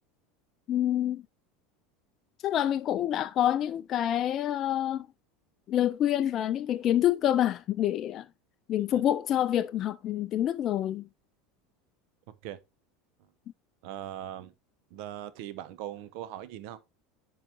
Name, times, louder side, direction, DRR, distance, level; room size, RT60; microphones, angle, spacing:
voice 1, 0.7-1.2 2.4-5.1 5.7-8.3 8.7-11.1, left 11 dB, 45° left, 0.3 m, -27 dB
voice 2, 12.3-12.6 13.2-13.3 13.8-14.5 14.9-16.8, right 12 dB, 65° right, 0.8 m, -40 dB
10.5 x 3.9 x 3.0 m
hypercardioid pair, 85°, 0 cm